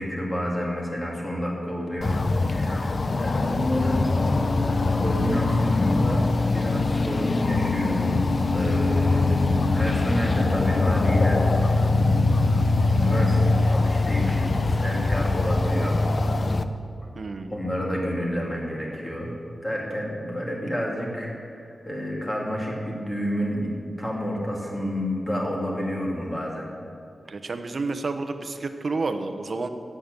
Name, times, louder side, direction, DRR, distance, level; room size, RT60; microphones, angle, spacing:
voice 1, 0.0-11.9 12.9-16.0 17.5-19.4 19.6-26.7, equal, 15° left, -2 dB, 2.7 m, -30 dB
sound 1, 2.0-16.6, left 3 dB, 40° left, 0.6 m, -22 dB
voice 2, 17.1-17.5 27.3-29.7, right 3 dB, 50° right, 8 dB, 0.9 m, -30 dB
16.0 x 8.7 x 6.8 m, 2.4 s
wide cardioid pair, 145°, 0 cm